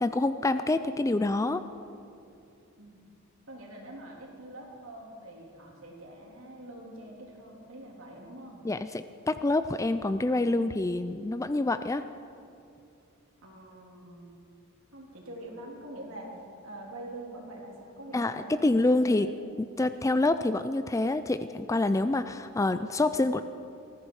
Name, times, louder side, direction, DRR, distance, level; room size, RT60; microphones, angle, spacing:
voice 1, 0.0-1.6 8.6-12.0 18.1-19.3 19.6-23.4, left 2 dB, 15° left, 11 dB, 0.3 m, -27 dB
voice 2, 2.8-3.1 3.5-8.6 13.4-14.3 14.9-19.4, right 1 dB, 70° right, -1 dB, 3.4 m, -45 dB
20.0 x 14.0 x 4.8 m, 2.6 s
head